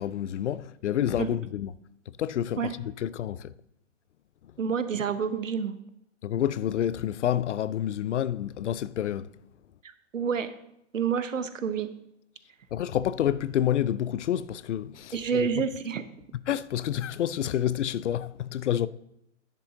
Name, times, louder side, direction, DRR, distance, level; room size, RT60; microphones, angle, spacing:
voice 1, 0.0-1.7 2.1-3.5 6.2-9.3 12.7-15.5 16.3-18.9, left 11 dB, 70° left, 0.5 m, -28 dB
voice 2, 4.6-5.8 10.1-10.5 10.9-11.9 15.1-16.0, right 6 dB, 85° right, 0.9 m, -28 dB
10.5 x 6.3 x 3.8 m
figure-of-eight pair, 120°, 38 cm